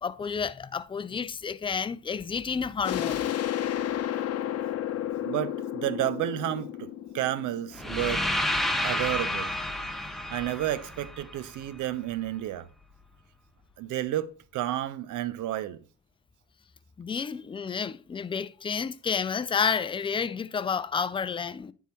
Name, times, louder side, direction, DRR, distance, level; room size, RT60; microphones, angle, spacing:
voice 1, 0.0-3.4 17.0-21.7, left 6 dB, 20° left, 0.3 m, -30 dB
sound 1, 2.8-8.3, left 11 dB, 55° left, 0.8 m, -32 dB
voice 2, 4.9-6.9 7.1-8.3 8.8-9.5 10.3-12.7 13.8-15.8, right 13 dB, 80° right, 0.6 m, -31 dB
sound 2, 7.7-11.8, left 1 dB, ahead, 0.8 m, -30 dB
9.3 x 3.7 x 4.3 m
cardioid pair, 90°, 30 cm